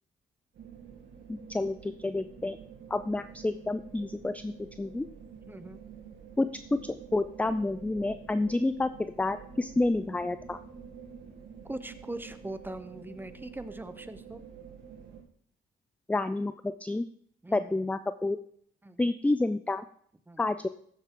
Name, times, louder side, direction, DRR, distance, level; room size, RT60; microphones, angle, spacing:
sound 1, 0.5-15.2, right 7 dB, 70° right, 2.5 m, -48 dB
voice 1, 1.3-2.6 2.9-5.1 6.4-8.9 9.2-10.6 16.1-17.0 17.5-18.4 19.0-19.8 20.4-20.7, left 2 dB, 5° left, 12 dB, 0.4 m, -29 dB
voice 2, 5.5-5.8 11.6-14.4 17.4-17.8 18.8-19.1 20.3-20.4, right 2 dB, 10° right, 11 dB, 0.8 m, -41 dB
14.5 x 7.3 x 3.7 m, 0.63 s
cardioid pair, 90°, 20 cm